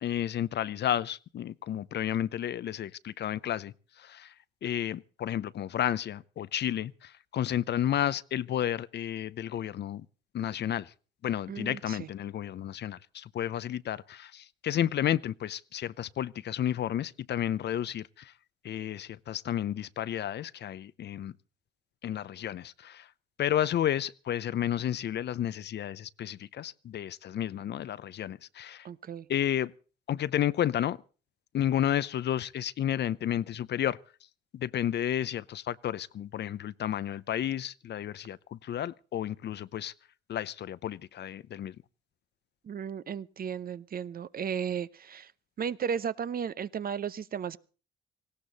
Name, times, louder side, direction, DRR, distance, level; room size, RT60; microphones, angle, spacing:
voice 1, 0.0-4.3 4.6-10.1 10.3-10.9 11.2-18.3 18.6-21.3 22.0-23.1 23.4-28.9 29.3-29.7 30.1-31.0 31.5-34.0 34.5-39.9 40.3-41.8, left 11 dB, 60° left, 0.7 m, -32 dB
voice 2, 11.5-12.1 28.8-29.3 42.6-45.3 45.6-47.6, right 7 dB, 50° right, 0.8 m, -34 dB
18.0 x 17.0 x 4.1 m
cardioid pair, 90°, 20 cm